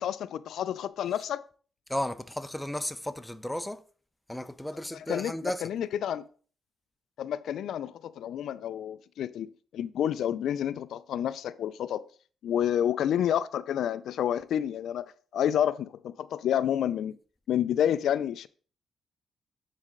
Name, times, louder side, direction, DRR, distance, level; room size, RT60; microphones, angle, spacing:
voice 1, 0.0-1.4 4.9-6.3 7.2-9.5 9.7-12.0 12.4-15.1 15.3-17.2 17.5-18.5, left 10 dB, 80° left, 0.3 m, -29 dB
voice 2, 1.9-3.8 4.3-5.7, left 1 dB, 5° left, 0.5 m, -34 dB
9.7 x 4.2 x 3.7 m
cardioid pair, 80°, 0 cm